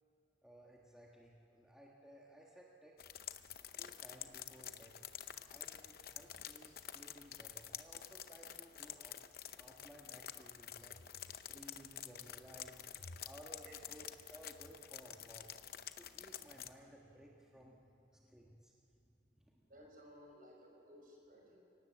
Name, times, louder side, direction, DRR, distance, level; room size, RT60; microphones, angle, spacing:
voice 1, 0.4-3.0 3.7-5.0 5.5-9.2 9.6-11.0 11.5-12.9 13.2-18.7 19.3-19.7, right 1 dB, 5° right, -3 dB, 1.5 m, -58 dB
sound 1, 3.0-16.7, left 10 dB, 55° left, 0.7 m, -49 dB
voice 2, 19.7-21.6, equal, 50° right, 0 dB, 5.7 m, -58 dB
25.5 x 18.5 x 7.5 m, 2.6 s
head